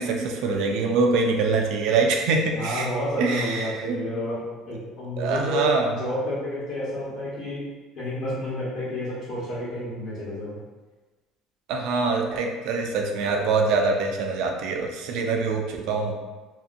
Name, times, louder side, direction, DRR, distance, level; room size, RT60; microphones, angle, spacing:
voice 1, 0.0-4.0 5.2-5.9 11.7-16.1, right 4 dB, 70° right, 2 dB, 0.4 m, -24 dB
voice 2, 2.5-7.6 7.9-10.5, left 1 dB, 65° left, -10 dB, 0.9 m, -30 dB
2.7 x 2.5 x 2.4 m, 1.3 s
cardioid pair, 150°, 0 cm